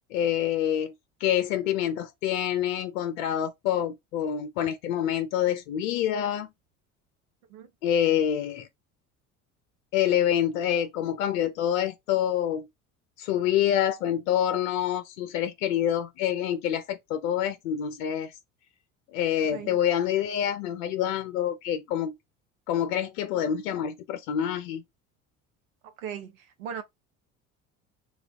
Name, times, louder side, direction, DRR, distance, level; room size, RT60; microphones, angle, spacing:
voice 1, 0.1-0.9 1.2-6.5 7.8-8.7 9.9-12.7 13.2-18.3 19.1-22.2 22.7-24.8, left 10 dB, 75° left, 0.6 m, -27 dB
voice 2, 25.8-26.8, right 8 dB, 85° right, 0.6 m, -38 dB
3.2 x 2.3 x 3.4 m
hypercardioid pair, 65°, 40 cm